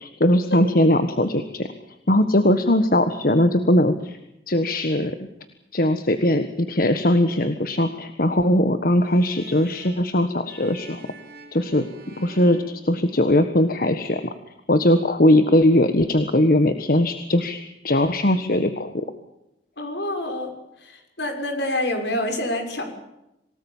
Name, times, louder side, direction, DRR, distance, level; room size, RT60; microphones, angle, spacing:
voice 1, 0.0-1.7 2.1-4.2 4.5-5.3 5.7-11.0 11.5-14.3 14.7-17.6 17.8-19.0, left 1 dB, 55° left, 9 dB, 1.5 m, -20 dB
sound 1, 9.0-13.6, right 1 dB, 60° right, 5.3 m, -47 dB
voice 2, 19.8-20.5 20.8-22.8, left 1 dB, 75° left, 5 dB, 6.2 m, -27 dB
27.5 x 18.5 x 7.4 m, 0.89 s
head